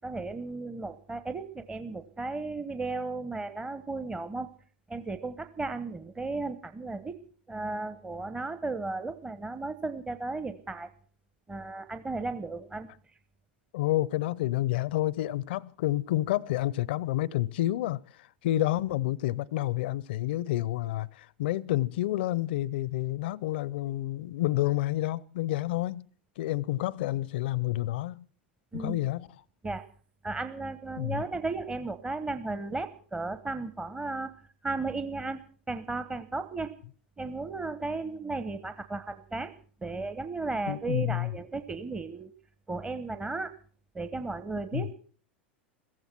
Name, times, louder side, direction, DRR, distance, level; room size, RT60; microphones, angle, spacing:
voice 1, 0.0-4.5 4.9-7.2 7.5-10.9 11.5-12.9 28.7-29.0 29.6-29.8 30.2-34.3 34.6-35.4 35.7-36.7 37.2-39.5 39.8-42.3 42.7-43.5 43.9-45.0, right 3 dB, 15° right, 1.0 m, -35 dB
voice 2, 13.7-18.0 18.4-26.1 26.4-28.3 28.7-29.3 31.0-31.2 40.7-41.3 44.7-44.9, left 15 dB, 65° left, 0.7 m, -29 dB
15.5 x 15.0 x 6.0 m
hypercardioid pair, 90°, 6 cm